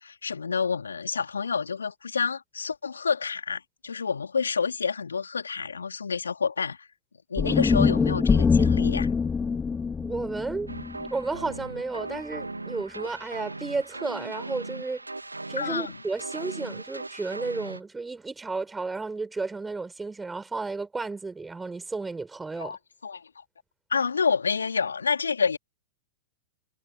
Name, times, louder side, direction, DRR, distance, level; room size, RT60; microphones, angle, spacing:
voice 1, 0.0-6.9 7.3-9.1 15.6-16.0 22.6-23.4 23.9-25.6, left 5 dB, 75° left, 3.8 m, -28 dB
sound 1, 7.4-11.6, left 5 dB, 15° left, 3.6 m, -24 dB
voice 2, 10.0-10.7 11.1-15.0 15.5-22.8, right 3 dB, 10° right, 5.1 m, -33 dB
sound 2, 10.7-17.8, right 2 dB, 85° right, 2.4 m, -38 dB
figure-of-eight pair, 100°, 0 cm